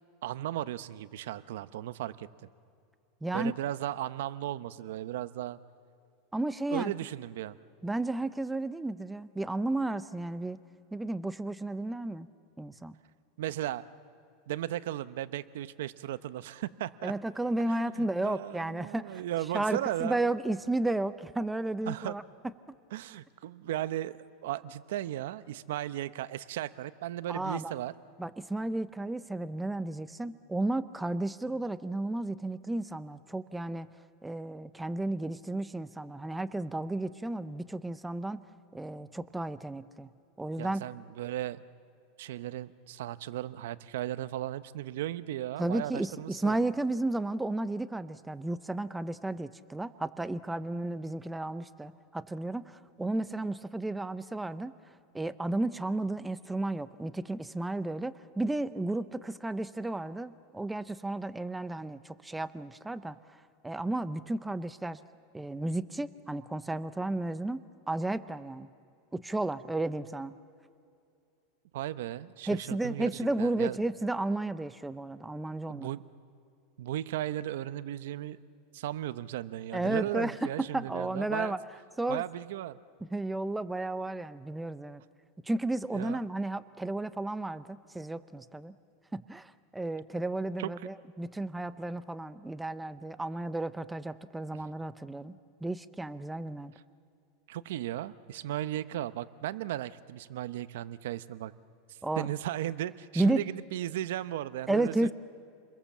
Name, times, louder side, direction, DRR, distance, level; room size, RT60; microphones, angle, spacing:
voice 1, 0.2-2.3 3.3-5.6 6.7-7.6 13.4-13.9 14.5-17.1 17.7-20.2 21.9-22.2 22.9-27.9 40.6-41.6 42.2-46.6 71.7-73.1 73.4-73.8 75.7-76.1 76.8-78.4 78.7-81.5 82.1-82.8 85.9-86.2 90.6-90.7 97.5-101.5 101.9-105.1, right 13 dB, 80° right, 14 dB, 0.8 m, -36 dB
voice 2, 3.2-3.5 6.3-6.9 7.8-10.6 10.9-12.3 12.6-13.0 17.0-19.2 19.5-22.2 27.3-27.7 28.2-33.9 34.2-38.4 38.7-40.1 40.4-40.8 45.6-54.7 55.1-63.2 63.6-65.0 65.3-67.6 67.9-68.7 69.1-70.3 72.5-75.9 79.7-81.6 82.0-82.2 83.1-85.0 85.4-88.7 89.1-96.7 102.0-102.3 103.2-103.5 104.7-105.1, right 2 dB, 5° right, 13 dB, 0.6 m, -33 dB
29.5 x 22.0 x 7.3 m, 2.4 s
supercardioid pair, 140°, 0 cm